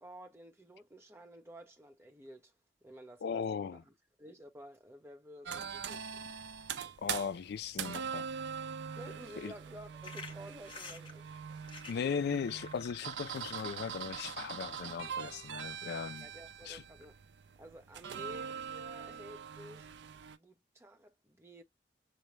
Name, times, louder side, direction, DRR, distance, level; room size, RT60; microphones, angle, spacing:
voice 1, 0.0-2.5 2.8-3.8 4.2-6.3 9.0-11.3 16.2-17.2 17.6-19.9 20.3-21.6, equal, 15° right, 0.9 m, -52 dB
voice 2, 3.2-3.8 7.0-8.3 9.4-9.5 11.9-16.3 16.7-16.8, left 6 dB, 60° left, 0.3 m, -37 dB
sound 1, 5.5-20.4, right 7 dB, 65° right, 0.5 m, -43 dB
sound 2, 10.0-16.1, left 3 dB, 30° left, 1.0 m, -52 dB
6.3 x 2.2 x 3.1 m
head